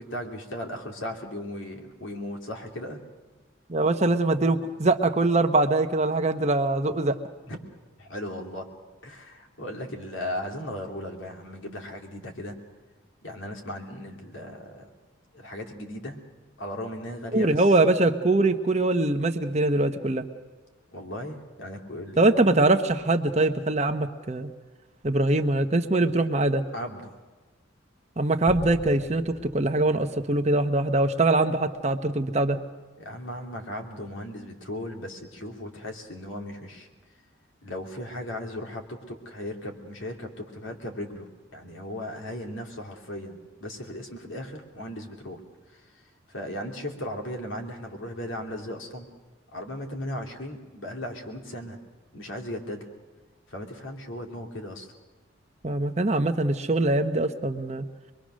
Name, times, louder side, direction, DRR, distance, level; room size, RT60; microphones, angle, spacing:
voice 1, 0.0-3.0 7.5-7.6 8.0-8.6 9.0-12.6 13.2-14.9 15.3-16.2 16.6-17.7 20.9-22.4 26.7-27.1 33.0-36.9 37.6-45.4 45.7-46.0 46.3-49.1 49.5-51.8 52.1-52.9 53.5-54.9, left 1 dB, 75° left, 2 dB, 2.9 m, -37 dB
voice 2, 3.7-7.1 17.3-20.2 22.2-24.5 25.0-26.6 28.2-32.6 55.6-57.8, right 2 dB, 35° right, 7 dB, 1.0 m, -23 dB
sound 1, 28.5-31.1, right 1 dB, 45° left, 1.6 m, -43 dB
24.5 x 22.0 x 6.4 m, 1.3 s
head